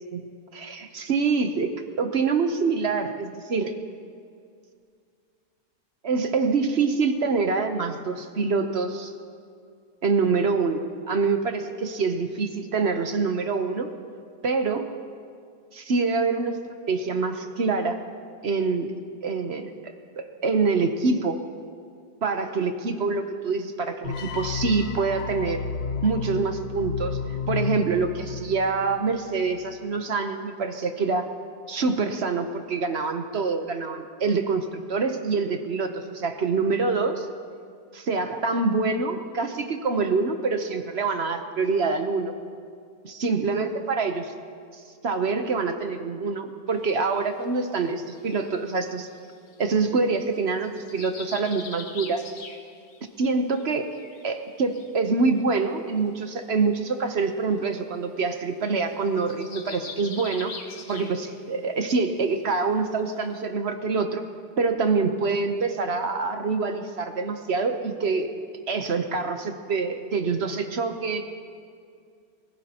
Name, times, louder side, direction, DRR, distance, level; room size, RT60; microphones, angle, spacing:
voice 1, 0.1-3.7 6.0-9.1 10.0-13.9 14.4-14.9 15.7-16.6 16.9-18.0 18.4-18.9 19.2-19.7 20.2-21.4 22.2-25.6 26.0-27.2 27.5-31.3 31.7-37.3 37.9-42.4 43.0-44.3 45.0-49.1 49.6-52.2 53.2-53.9 54.2-60.5 60.9-64.2 64.6-68.3 68.7-71.2, right 4 dB, 50° right, 6 dB, 0.9 m, -25 dB
sound 1, 24.0-29.1, left 5 dB, 75° left, 1.6 m, -32 dB
sound 2, 46.7-46.9 47.6-49.9 50.4-53.0 53.3-54.9 55.4-55.5 55.7-55.9 56.9-57.0 57.3-57.4 57.7-57.9 58.2-58.4 58.6-61.5 61.8-62.0 62.4-62.5 63.1-63.2, left 4 dB, 45° left, 1.3 m, -43 dB
23.5 x 15.5 x 2.9 m, 2.3 s
omnidirectional pair, 2.0 m